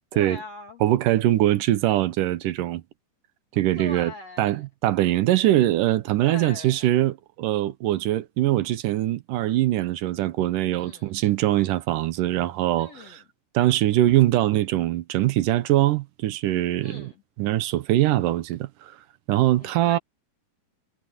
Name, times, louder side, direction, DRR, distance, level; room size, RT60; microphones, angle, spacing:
voice 1, 0.1-0.8 3.8-4.6 6.2-6.9 10.8-11.1 12.8-13.2 16.8-17.2 19.6-20.0, left 4 dB, 55° left, 3.0 m, -41 dB
voice 2, 0.8-2.8 3.5-4.1 4.4-13.2 13.5-17.1 17.4-19.0 19.3-20.0, right 14 dB, 75° right, 2.5 m, -22 dB
omnidirectional pair, 3.9 m